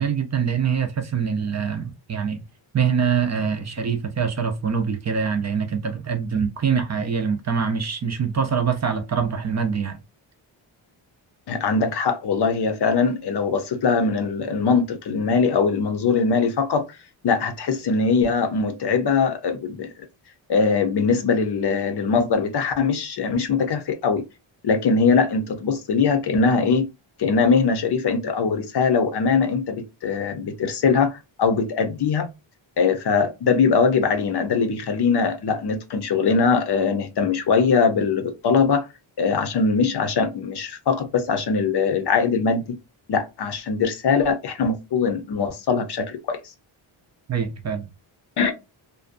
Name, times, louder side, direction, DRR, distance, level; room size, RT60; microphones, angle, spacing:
voice 1, 0.0-2.4 2.7-10.0 47.3-47.9, right 6 dB, 35° right, 0.5 m, -24 dB
voice 2, 11.5-16.8 17.2-19.9 20.5-24.2 24.6-26.9 27.2-32.3 32.8-38.8 39.2-42.7 43.1-46.4 48.4-48.5, left 5 dB, 55° left, 0.7 m, -21 dB
2.6 x 2.2 x 2.4 m
wide cardioid pair, 120°, 48 cm